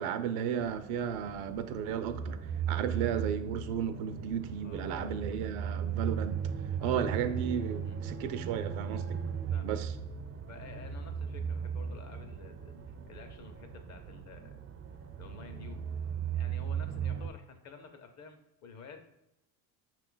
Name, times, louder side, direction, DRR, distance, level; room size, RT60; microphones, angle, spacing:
voice 1, 0.0-6.4 6.8-9.2 9.6-9.9, right 8 dB, 80° right, 10 dB, 0.6 m, -34 dB
sound 1, 0.6-17.3, right 7 dB, 30° right, 0.4 m, -37 dB
voice 2, 4.6-5.4 6.8-7.0 9.5-9.7 10.5-14.6 15.2-19.1, left 5 dB, 40° left, 6 dB, 0.7 m, -51 dB
5.4 x 2.5 x 3.8 m, 0.84 s
supercardioid pair, 95°, 44 cm